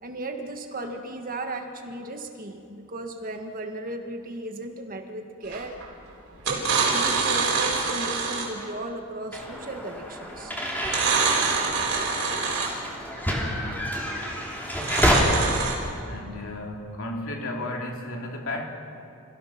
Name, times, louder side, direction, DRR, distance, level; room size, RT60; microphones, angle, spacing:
voice 1, 0.0-5.8 6.5-10.6, right 2 dB, 40° right, 4 dB, 1.7 m, -36 dB
sound 1, 5.5-5.9 6.4-8.6 10.8-12.9 14.7-15.7, right 5 dB, 65° right, 4.8 m, -25 dB
sound 2, 9.3-15.2, equal, 10° left, 3.4 m, -29 dB
voice 2, 16.1-18.7, left 1 dB, 65° left, 0 dB, 3.2 m, -33 dB
29.5 x 17.0 x 6.0 m, 2.5 s
head